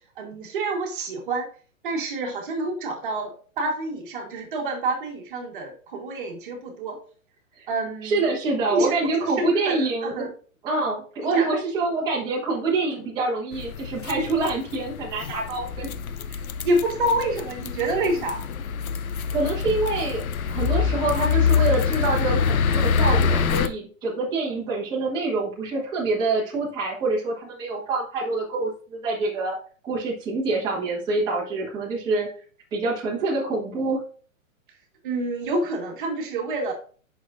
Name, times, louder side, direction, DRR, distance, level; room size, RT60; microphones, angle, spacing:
voice 1, 0.2-1.5 1.8-7.0 7.7-8.3 8.7-10.3 11.2-11.5 15.3-15.4 16.3-18.4 35.0-36.7, right 2 dB, 40° right, 2 dB, 1.6 m, -28 dB
voice 2, 8.0-10.3 10.6-15.9 19.3-20.2 20.5-29.6 29.8-32.3 32.7-34.0, right 3 dB, 10° right, -5 dB, 1.4 m, -26 dB
sound 1, 13.5-23.7, left 6 dB, 85° left, 0.8 m, -25 dB
8.3 x 6.1 x 2.6 m, 0.41 s
hypercardioid pair, 170°, 41 cm